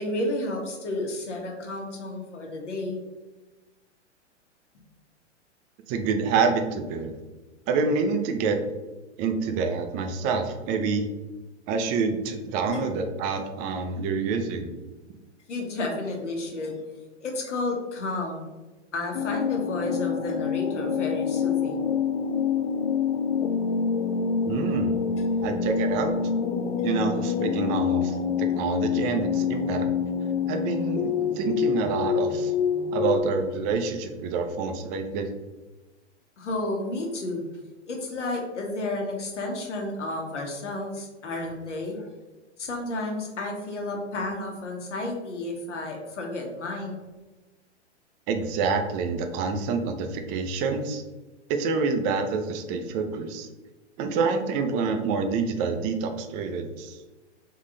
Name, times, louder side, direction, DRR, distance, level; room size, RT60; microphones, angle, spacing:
voice 1, 0.0-3.0 12.6-12.8 15.5-16.8 17.2-18.5 18.9-21.9 25.1-25.9 36.4-37.4 37.9-42.1 42.6-47.0, left 2 dB, 80° left, 1 dB, 1.3 m, -32 dB
voice 2, 5.9-7.1 7.7-8.6 9.2-11.0 11.7-14.7 24.5-25.0 25.4-26.1 26.8-29.9 30.5-32.5 32.9-35.3 48.3-51.0 51.5-53.5 54.0-57.0, right 4 dB, 25° right, 6 dB, 0.4 m, -27 dB
sound 1, 19.1-33.2, left 6 dB, 60° left, 0.6 m, -26 dB
3.7 x 3.1 x 3.7 m, 1.2 s
hypercardioid pair, 120°, 35 cm